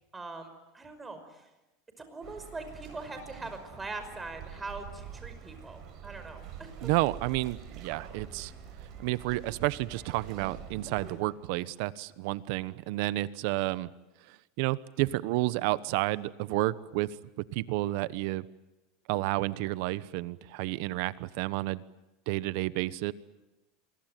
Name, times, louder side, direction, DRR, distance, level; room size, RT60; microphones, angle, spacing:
voice 1, 0.1-1.4 2.0-6.7, right 3 dB, 15° right, 8 dB, 5.4 m, -42 dB
sound 1, 2.2-11.1, right 8 dB, 45° right, 8.0 m, -46 dB
voice 2, 6.8-8.5 9.0-13.9 14.3-17.1 17.5-18.5 19.1-21.8 22.3-23.1, right 18 dB, 65° right, 17 dB, 1.1 m, -31 dB
28.0 x 23.0 x 9.2 m, 1.0 s
supercardioid pair, 130°, 0 cm